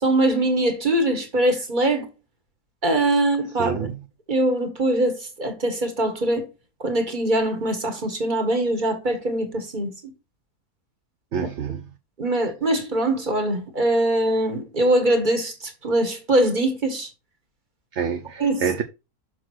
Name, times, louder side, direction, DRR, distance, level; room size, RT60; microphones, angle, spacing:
voice 1, 0.0-2.1 2.8-3.7 4.3-6.5 6.8-9.9 12.2-15.5 15.8-17.1 18.4-18.6, right 1 dB, 30° right, 1.9 m, -22 dB
voice 2, 3.6-4.0 11.3-11.8 17.9-18.8, right 7 dB, 55° right, 1.0 m, -27 dB
6.7 x 6.0 x 4.5 m
omnidirectional pair, 1.6 m